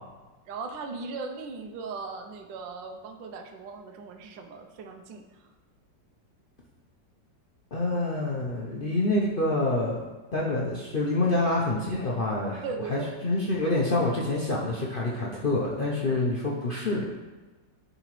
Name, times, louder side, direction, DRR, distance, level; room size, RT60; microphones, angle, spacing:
voice 1, 0.5-5.5 12.6-13.2, right 4 dB, 90° right, 5 dB, 1.3 m, -38 dB
voice 2, 7.7-10.1 10.3-12.6 12.9-17.1, left 2 dB, 70° left, -3 dB, 0.5 m, -27 dB
10.5 x 4.0 x 3.1 m, 1.2 s
omnidirectional pair, 2.0 m